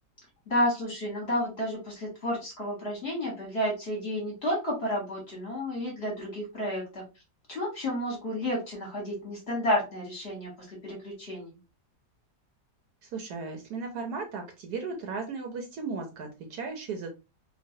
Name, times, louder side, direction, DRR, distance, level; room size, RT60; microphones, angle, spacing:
voice 1, 0.5-7.0 7.5-11.6, left 1 dB, 40° left, -2 dB, 1.2 m, -31 dB
voice 2, 13.0-17.1, right 4 dB, 70° right, 3 dB, 1.1 m, -36 dB
3.1 x 2.3 x 2.6 m, 0.28 s
omnidirectional pair, 1.9 m